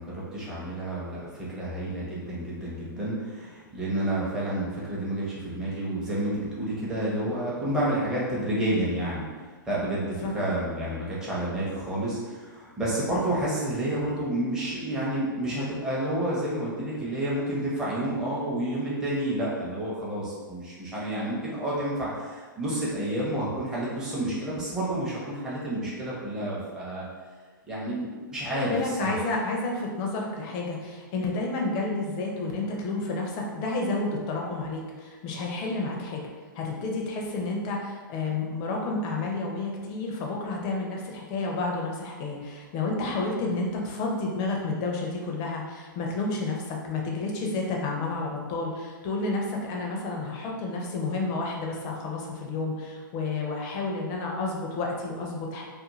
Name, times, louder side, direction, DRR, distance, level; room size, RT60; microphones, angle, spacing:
voice 1, 0.0-27.1 27.7-29.2, right 1 dB, 5° right, -8 dB, 0.7 m, -30 dB
voice 2, 28.5-36.2 36.5-55.6, left 3 dB, 35° left, 0 dB, 0.6 m, -30 dB
2.4 x 2.1 x 3.0 m, 1.5 s
hypercardioid pair, 120°, 11 cm